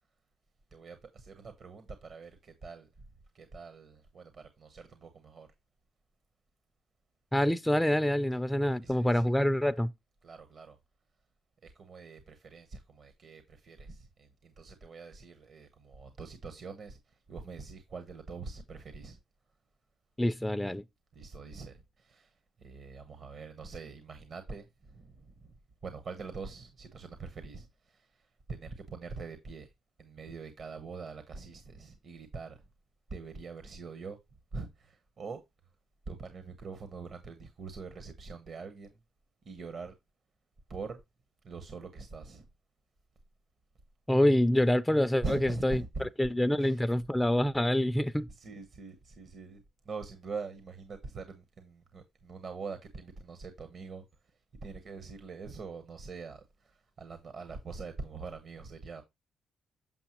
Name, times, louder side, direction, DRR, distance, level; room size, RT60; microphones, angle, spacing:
voice 1, 0.7-2.9 3.3-5.5 8.8-9.3 10.2-10.8 11.6-19.2 21.1-22.3 22.6-25.5 25.8-29.7 30.0-32.6 33.1-34.2 34.5-35.4 36.1-39.0 39.4-39.9 40.7-41.0 41.4-42.5 45.2-46.1 46.6-46.9 48.3-54.0 54.6-59.0, right 4 dB, 50° right, 1.0 m, -44 dB
voice 2, 7.3-9.9 20.2-20.8 44.1-48.3, left 1 dB, 5° left, 0.4 m, -26 dB
7.1 x 5.8 x 3.0 m
cardioid pair, 90°, 0 cm